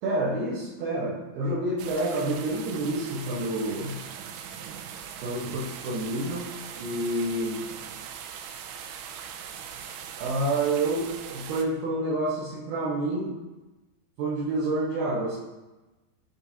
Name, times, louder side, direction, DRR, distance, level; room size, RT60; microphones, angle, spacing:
voice 1, 0.0-4.0 5.2-6.5 6.8-7.6 10.2-13.4 14.2-15.4, right 2 dB, 70° right, -8 dB, 2.8 m, -28 dB
sound 1, 1.8-11.6, right 8 dB, 90° right, 2.2 m, -40 dB
10.5 x 4.4 x 2.8 m, 1.1 s
omnidirectional pair, 5.2 m